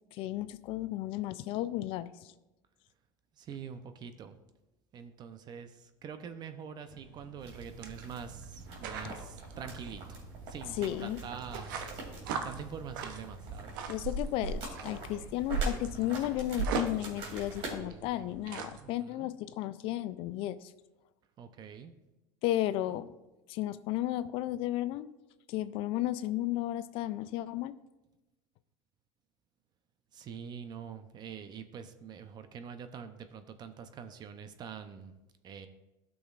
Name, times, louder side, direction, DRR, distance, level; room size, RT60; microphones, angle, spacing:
voice 1, 0.1-2.3 10.7-11.2 13.9-20.7 22.4-23.1 23.5-25.1 25.5-27.7, left 14 dB, 60° left, 14 dB, 0.3 m, -34 dB
voice 2, 3.4-4.4 4.9-10.0 10.5-11.8 12.3-13.7 18.8-19.3 21.4-21.9 30.1-35.1 35.4-35.7, right 7 dB, 40° right, 10 dB, 0.6 m, -45 dB
sound 1, 6.9-18.8, right 5 dB, 85° right, 0.7 m, -40 dB
sound 2, 7.4-17.7, right 2 dB, 60° right, 2.6 m, -45 dB
12.0 x 6.2 x 2.4 m, 1.0 s
supercardioid pair, 100°, 11 cm